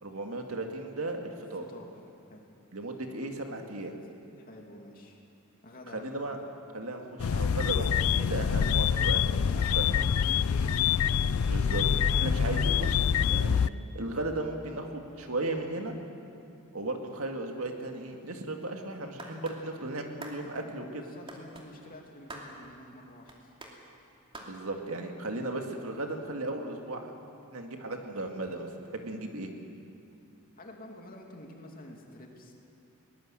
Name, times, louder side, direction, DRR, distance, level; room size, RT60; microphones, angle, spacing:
voice 1, 0.0-1.7 2.7-4.0 5.9-6.4 6.7-9.9 11.5-13.0 13.3-13.6 13.9-15.9 16.7-21.0 24.4-27.1 27.5-28.7 28.9-29.5, right 2 dB, 70° right, 3 dB, 2.2 m, -36 dB
voice 2, 4.4-5.2 5.6-6.1 9.4-10.8 20.6-23.5 30.6-32.5, left 1 dB, 40° left, 1 dB, 2.8 m, -48 dB
sound 1, 7.2-13.7, left 7 dB, 75° left, 0.4 m, -26 dB
sound 2, 19.2-19.6 20.2-20.4 21.3-21.7 22.3-22.5 23.3-23.7 24.3-24.5, right 2 dB, 25° right, 2.8 m, -44 dB
22.0 x 19.5 x 7.6 m, 2.5 s
head